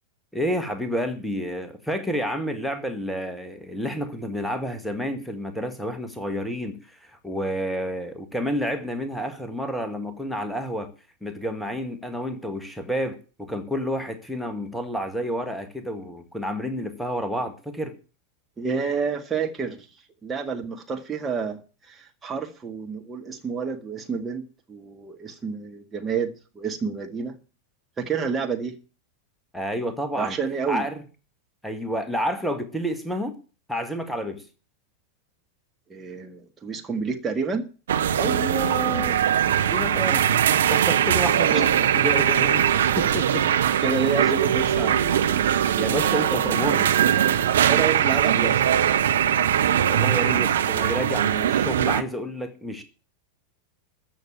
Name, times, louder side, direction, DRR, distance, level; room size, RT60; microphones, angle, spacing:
voice 1, 0.3-10.9 11.2-17.9 29.5-30.4 30.7-31.0 31.6-33.4 33.7-34.4 38.2-39.2 39.7-40.3 40.7-43.7 45.8-47.0 49.9-52.8, equal, ahead, 1.6 m, -30 dB
voice 2, 18.6-19.8 20.2-21.6 21.9-24.4 24.7-26.3 26.6-27.3 28.0-28.7 30.2-30.9 35.9-37.6 41.5-41.6 43.8-45.3 46.3-46.5 47.7-48.7, right 5 dB, 15° right, 1.8 m, -29 dB
sound 1, 37.9-52.0, right 9 dB, 65° right, 0.9 m, -21 dB
14.0 x 6.6 x 8.7 m
figure-of-eight pair, 90°, 0 cm